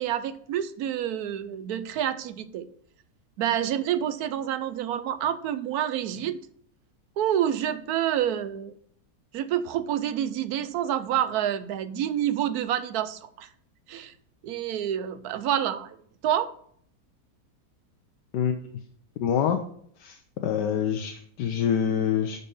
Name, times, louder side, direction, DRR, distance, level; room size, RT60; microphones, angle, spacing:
voice 1, 0.0-2.7 3.4-6.4 7.2-8.7 9.3-13.5 13.9-14.1 14.4-16.0 16.2-16.5, right 10 dB, 70° right, 13 dB, 1.0 m, -28 dB
voice 2, 19.2-19.6 20.0-22.5, left 8 dB, 85° left, 5 dB, 1.3 m, -26 dB
11.0 x 4.2 x 5.4 m, 0.63 s
omnidirectional pair, 1.8 m